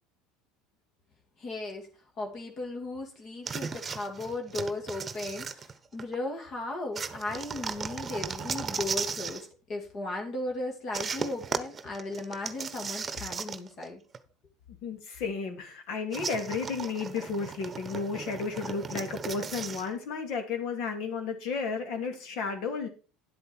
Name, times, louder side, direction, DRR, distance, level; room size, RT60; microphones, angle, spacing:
voice 1, 1.4-1.9 2.2-14.0, left 2 dB, 45° left, 2.5 m, -36 dB
sound 1, 3.5-6.2 6.9-9.5 10.9-13.9 14.1-14.2 16.1-19.9, right 5 dB, 25° right, 1.1 m, -36 dB
voice 2, 14.8-22.9, left 5 dB, 65° left, 2.8 m, -33 dB
10.5 x 8.0 x 4.5 m
supercardioid pair, 95°, 0 cm